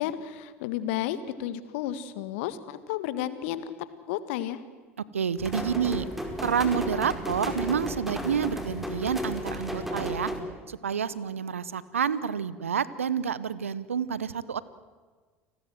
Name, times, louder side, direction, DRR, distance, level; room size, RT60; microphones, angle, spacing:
voice 1, 0.0-3.8 4.1-4.6, left 12 dB, 65° left, 14 dB, 1.7 m, -32 dB
voice 2, 5.1-6.1 6.4-10.3 10.7-14.6, right 7 dB, 85° right, 18 dB, 0.9 m, -29 dB
sound 1, 5.4-10.4, equal, 5° right, 5.0 m, -33 dB
29.5 x 20.0 x 7.8 m, 1.5 s
figure-of-eight pair, 70°, 7 cm